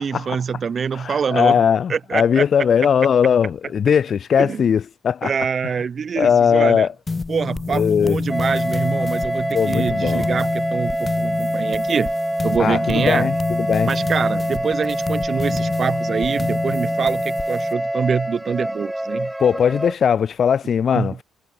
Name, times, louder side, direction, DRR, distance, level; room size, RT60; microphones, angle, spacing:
voice 1, 0.0-1.6 1.9-2.4 4.4-4.6 5.2-6.9 7.3-12.2 12.4-13.3 13.8-19.3 20.9-21.2, right 6 dB, 45° right, 1.6 m, -25 dB
voice 2, 0.9-5.3 6.2-6.9 7.7-8.2 9.5-10.3 12.6-13.9 19.4-21.2, left 7 dB, 50° left, 1.0 m, -19 dB
sound 1, 7.1-17.7, left 3 dB, 30° left, 3.5 m, -27 dB
sound 2, 8.3-20.0, right 1 dB, 5° right, 0.7 m, -25 dB
figure-of-eight pair, 45°, 0 cm